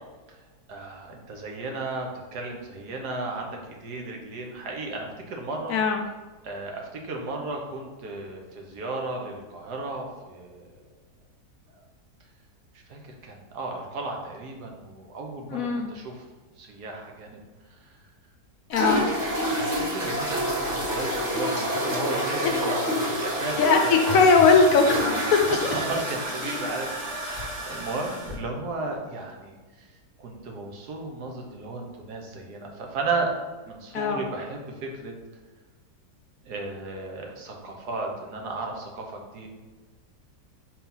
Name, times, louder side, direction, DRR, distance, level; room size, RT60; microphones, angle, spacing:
voice 1, 0.7-5.8 6.4-10.7 12.9-16.2 16.6-17.4 17.8-18.0 19.5-23.9 24.9-25.0 25.3-26.9 27.1-29.9 30.2-33.3 33.7-35.1 36.4-39.5, right 3 dB, 75° right, 1 dB, 1.5 m, -34 dB
voice 2, 5.7-6.0 15.5-15.9 18.7-19.1 22.4-22.6 23.6-25.0 25.3-25.7 33.9-34.2, left 4 dB, 70° left, 4 dB, 0.9 m, -20 dB
sound 1, 18.7-28.3, equal, 25° right, 1.5 m, -28 dB
4.6 x 3.7 x 5.5 m, 1.3 s
omnidirectional pair, 1.8 m